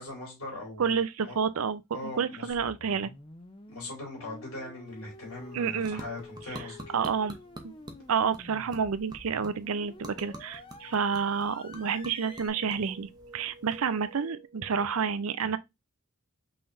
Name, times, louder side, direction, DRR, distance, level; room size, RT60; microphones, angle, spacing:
voice 1, 0.0-1.3 1.9-2.5 3.7-7.0, left 2 dB, 75° left, 3.2 m, -40 dB
voice 2, 0.8-1.8 2.2-3.1 5.5-6.0 6.9-7.4 8.1-15.6, right 6 dB, 75° right, 0.5 m, -29 dB
sound 1, 2.5-12.5, left 2 dB, 25° left, 0.5 m, -49 dB
sound 2, 4.9-14.3, right 1 dB, 20° right, 0.7 m, -49 dB
sound 3, 7.9-8.3 8.7-15.0, right 3 dB, 55° right, 1.2 m, -54 dB
5.5 x 3.3 x 2.6 m
head